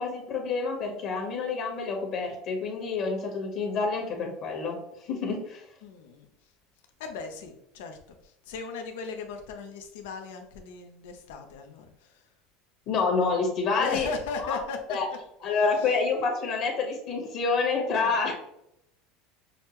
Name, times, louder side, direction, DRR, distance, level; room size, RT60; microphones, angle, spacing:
voice 1, 0.0-5.6 12.9-14.1 14.4-14.6 14.9-15.1 15.4-18.3, left 4 dB, 50° left, 0 dB, 1.4 m, -28 dB
voice 2, 5.8-6.2 7.0-12.2 13.8-15.2 15.4-15.9 18.0-18.2, left 5 dB, 85° left, 5 dB, 0.8 m, -38 dB
6.4 x 2.2 x 3.1 m, 0.79 s
supercardioid pair, 125°, 0 cm